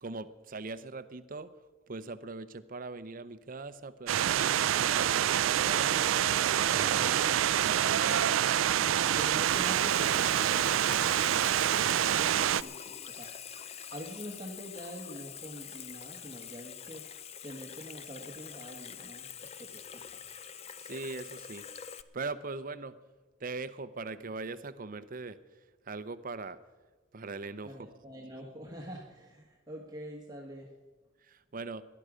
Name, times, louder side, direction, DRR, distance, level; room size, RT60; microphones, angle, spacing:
voice 1, 0.0-1.5 1.9-8.5 13.1-13.3 20.8-21.7 22.1-23.0 23.4-25.4 25.8-26.6 27.1-27.9 31.2-31.8, right 3 dB, 45° right, 13 dB, 0.7 m, -41 dB
sound 1, 4.1-12.6, right 10 dB, 85° right, 0.4 m, -26 dB
voice 2, 6.7-7.2 9.0-13.3 13.9-19.3 19.6-20.2 27.6-30.7, equal, 20° right, -1 dB, 1.4 m, -45 dB
Water tap faucet / Sink (filling or washing), 8.4-22.0, left 8 dB, 35° left, 0.5 m, -45 dB
19.0 x 11.0 x 5.0 m, 1.3 s
head